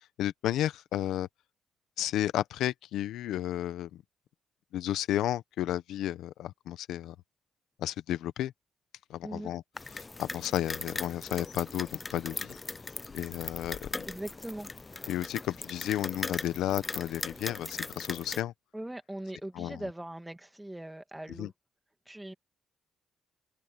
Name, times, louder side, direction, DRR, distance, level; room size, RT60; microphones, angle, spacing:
voice 1, 0.2-1.3 2.0-3.9 4.7-7.1 7.8-8.5 9.1-9.6 9.9-12.5 13.1-13.8 15.1-18.5 19.5-19.9 21.4-21.5, left 12 dB, 85° left, 0.9 m, -32 dB
voice 2, 9.2-9.5 14.1-14.7 18.7-21.5 22.1-22.3, right 1 dB, 10° right, 2.4 m, -40 dB
sound 1, 9.8-18.4, left 3 dB, 20° left, 0.6 m, -39 dB
Bird, 10.9-17.6, left 8 dB, 55° left, 1.5 m, -55 dB
cardioid pair, 90°, 0 cm